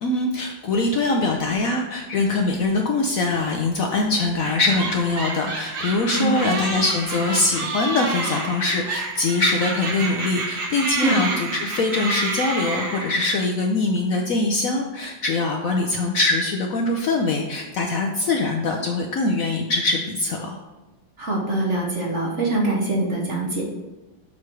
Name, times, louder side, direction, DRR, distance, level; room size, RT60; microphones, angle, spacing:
voice 1, 0.0-20.6, left 2 dB, 80° left, 2 dB, 0.7 m, -23 dB
sound 1, 4.4-13.5, right 3 dB, 70° right, 1.8 m, -29 dB
voice 2, 6.1-6.5 11.0-11.2 21.2-23.6, right 2 dB, 45° right, -2 dB, 1.1 m, -24 dB
7.3 x 3.2 x 6.0 m, 1.1 s
omnidirectional pair, 2.2 m